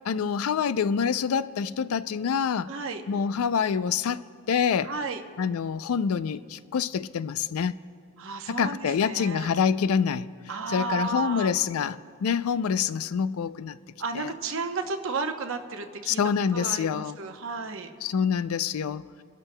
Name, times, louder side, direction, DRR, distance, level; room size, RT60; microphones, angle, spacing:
voice 1, 0.1-2.7 3.1-4.2 4.5-4.9 5.4-7.7 8.5-10.3 10.7-13.8 14.1-14.3 16.1-17.2 18.0-19.0, left 7 dB, 85° left, 0.4 m, -26 dB
voice 2, 2.7-3.0 4.8-5.2 8.2-9.5 10.5-11.5 14.0-16.2 16.5-17.9, right 4 dB, 65° right, 0.8 m, -33 dB
30.0 x 12.5 x 2.2 m
head